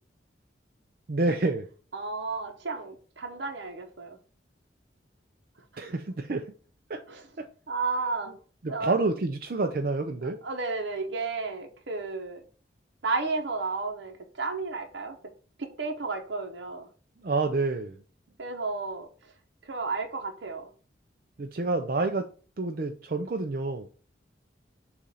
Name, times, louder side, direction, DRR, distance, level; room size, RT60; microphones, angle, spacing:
voice 1, 1.1-1.7 5.8-6.4 6.9-7.5 8.6-10.4 17.2-18.0 21.4-22.3 22.6-23.9, right 3 dB, 50° right, 0.5 m, -28 dB
voice 2, 1.9-4.2 7.1-7.2 7.7-8.4 8.7-8.9 10.2-12.4 13.0-15.3 15.6-16.9 18.4-19.3 19.6-20.7, right 3 dB, 75° right, 0.9 m, -33 dB
7.0 x 2.5 x 5.5 m
head